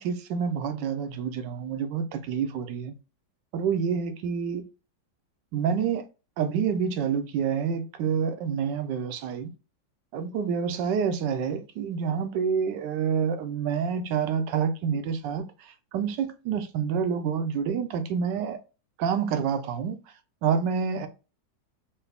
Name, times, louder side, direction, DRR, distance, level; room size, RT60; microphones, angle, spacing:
voice 1, 0.0-2.9 3.5-4.6 5.5-6.0 6.4-9.5 10.1-18.6 19.0-20.0 20.4-21.1, right 7 dB, 75° right, 1.2 m, -28 dB
4.7 x 2.6 x 3.4 m
omnidirectional pair, 2.0 m